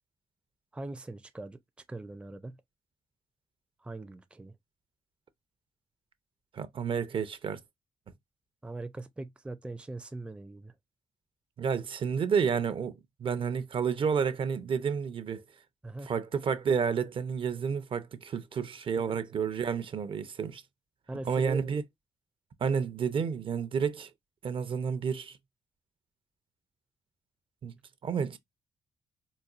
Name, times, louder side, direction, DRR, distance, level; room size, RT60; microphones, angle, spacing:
voice 1, 0.7-1.6 1.9-2.6 3.8-4.5 8.6-10.7 15.8-16.1 21.1-21.6, right 2 dB, 10° right, 0.4 m, -41 dB
voice 2, 6.5-7.6 11.6-15.4 16.0-20.6 21.2-21.8 22.6-24.1 24.4-25.4 27.6-27.7 28.0-28.4, right 6 dB, 55° right, 0.6 m, -30 dB
4.1 x 2.3 x 2.4 m
cardioid pair, 90°, 11 cm